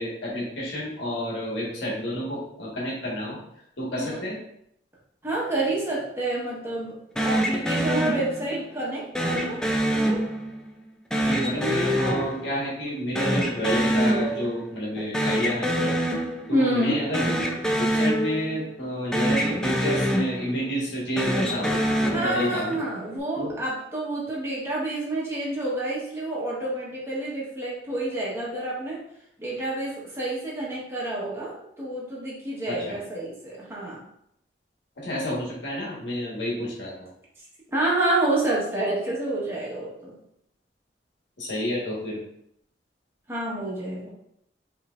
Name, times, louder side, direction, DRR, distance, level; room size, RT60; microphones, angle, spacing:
voice 1, 0.0-3.4 3.8-4.3 11.2-16.0 16.5-17.3 17.8-22.8 23.3-23.5 32.7-33.0 35.0-37.1 41.4-42.2, equal, 85° left, -5 dB, 1.5 m, -30 dB
voice 2, 5.2-9.6 9.9-10.2 16.5-16.9 22.1-29.0 29.4-34.0 37.7-40.2 43.3-44.1, right 1 dB, 15° right, -6 dB, 1.2 m, -28 dB
sound 1, 7.2-8.7 9.1-10.7 11.1-12.9 13.1-14.7 15.0-16.7 17.1-18.9 19.1-20.7 21.1-22.8, equal, 5° left, 0.4 m, -26 dB
5.5 x 3.2 x 2.5 m, 0.75 s
head